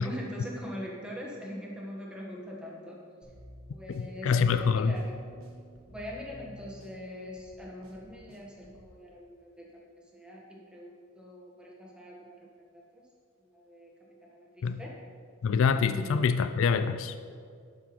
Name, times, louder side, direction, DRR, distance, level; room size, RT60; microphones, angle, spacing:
voice 1, 0.0-3.0 3.7-5.1 5.9-9.7 10.1-13.0 13.4-13.9 14.2-14.9 15.8-16.3, left 1 dB, 5° right, -3 dB, 1.4 m, -42 dB
sound 1, 3.2-8.9, equal, 70° right, 1.5 m, -51 dB
voice 2, 3.9-4.9 14.6-14.8 15.4-17.1, left 5 dB, 60° left, 10 dB, 0.3 m, -26 dB
12.0 x 6.1 x 4.3 m, 2.2 s
head